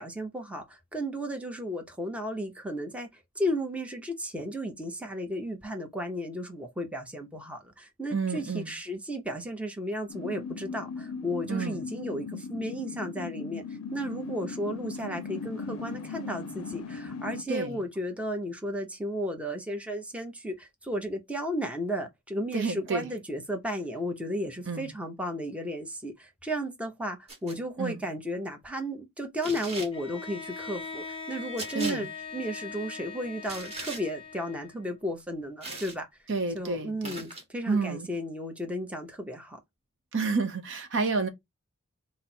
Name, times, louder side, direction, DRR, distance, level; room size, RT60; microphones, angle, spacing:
voice 1, 0.0-3.1 3.4-13.6 13.9-36.1 36.5-39.6, equal, 5° right, 0.7 m, -34 dB
voice 2, 8.1-8.7 11.5-11.8 17.5-17.8 22.5-23.1 24.7-24.9 27.8-28.0 31.7-32.1 36.3-37.3 37.7-38.1 40.1-41.3, right 4 dB, 55° right, 0.7 m, -30 dB
sound 1, 10.1-17.4, left 5 dB, 75° left, 0.5 m, -38 dB
sound 2, 27.3-27.6 29.4-29.9 31.6-32.0 33.5-34.0 35.6-36.0 37.0-37.4, right 2 dB, 30° right, 1.2 m, -39 dB
Bowed string instrument, 29.9-34.9, left 5 dB, 25° left, 0.8 m, -41 dB
5.0 x 2.0 x 4.2 m
head